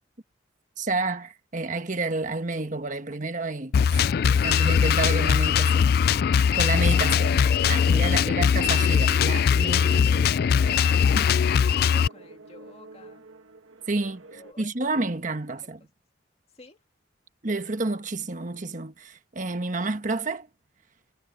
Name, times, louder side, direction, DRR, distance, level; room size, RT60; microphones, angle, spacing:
voice 1, 0.8-6.0 6.5-10.4 11.1-11.3 13.9-15.8 17.4-20.5, right 3 dB, 40° right, 1.3 m, -30 dB
Drum kit, 3.7-12.1, left 7 dB, 50° left, 0.3 m, -21 dB
sound 1, 6.6-14.5, right 2 dB, 90° right, 1.9 m, -48 dB
voice 2, 8.1-8.5 11.9-13.2 14.3-14.9 15.6-15.7 16.5-16.8, left 2 dB, 30° left, 2.3 m, -51 dB
head